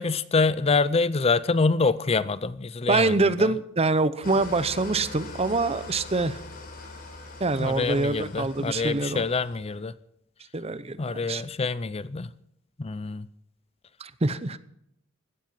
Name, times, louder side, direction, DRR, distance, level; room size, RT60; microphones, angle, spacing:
voice 1, 0.0-3.5 7.6-9.9 11.0-12.3 12.8-13.3, left 4 dB, 30° left, 16 dB, 0.5 m, -26 dB
voice 2, 2.9-6.4 7.4-9.3 10.5-11.4 14.0-14.6, right 3 dB, 30° right, 15 dB, 0.8 m, -25 dB
Engine starting / Idling, 4.2-9.6, left 3 dB, 45° left, 4.4 m, -42 dB
16.5 x 12.5 x 5.8 m, 0.74 s
head